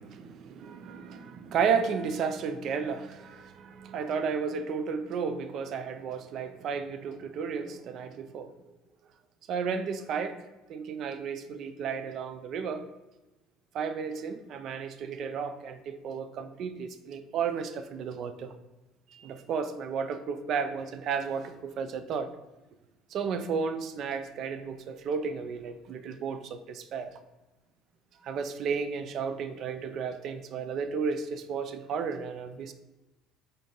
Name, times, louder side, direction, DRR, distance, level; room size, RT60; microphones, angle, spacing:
voice 1, 0.0-8.5 9.5-10.4 10.7-12.9 13.7-18.5 19.1-22.3 23.1-27.1 28.2-32.7, right 6 dB, 50° right, 10 dB, 0.3 m, -33 dB
3.8 x 2.7 x 3.5 m, 1.1 s
figure-of-eight pair, 60°, 0 cm